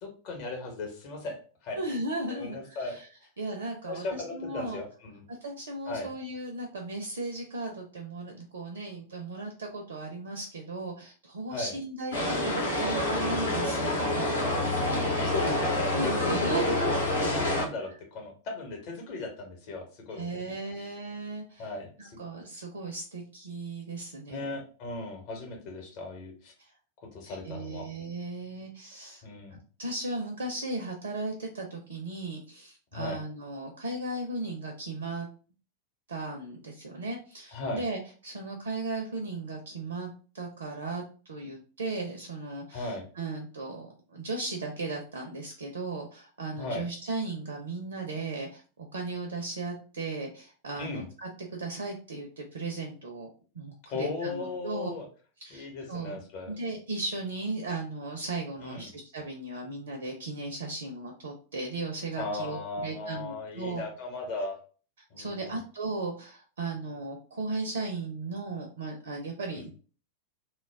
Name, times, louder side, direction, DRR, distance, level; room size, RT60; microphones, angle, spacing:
voice 1, 0.0-1.8 2.3-3.0 3.8-5.2 5.9-6.1 11.5-11.7 15.2-16.9 17.2-20.5 21.6-22.2 24.3-26.5 27.0-27.9 29.2-29.6 32.9-33.2 37.5-37.8 42.7-43.0 46.6-46.8 50.8-51.1 53.9-55.1 55.5-56.5 58.6-58.9 62.1-64.6 65.1-65.6 69.5-69.7, left 3 dB, 45° left, 2 dB, 0.9 m, -37 dB
voice 2, 1.8-3.1 3.4-4.8 5.3-14.4 15.9-16.6 20.1-21.7 22.0-24.5 27.2-29.2 29.8-35.3 36.1-41.0 41.3-48.6 48.9-53.3 53.5-54.9 55.4-56.2 56.5-63.9 65.2-69.7, right 2 dB, 65° right, 2 dB, 0.4 m, -36 dB
sound 1, 12.1-17.6, left 1 dB, 75° left, 0.8 m, -27 dB
2.2 x 2.1 x 3.2 m, 0.38 s
figure-of-eight pair, 90°, 0 cm